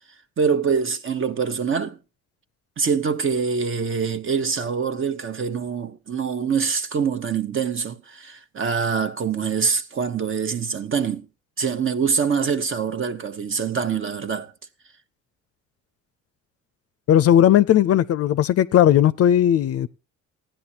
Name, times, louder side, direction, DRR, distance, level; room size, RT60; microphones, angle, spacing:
voice 1, 0.4-2.0 2.8-11.3 11.6-14.5, right 6 dB, 40° right, 1.0 m, -24 dB
voice 2, 17.1-19.9, left 11 dB, 55° left, 0.4 m, -17 dB
15.5 x 10.0 x 2.8 m
cardioid pair, 90°, 30 cm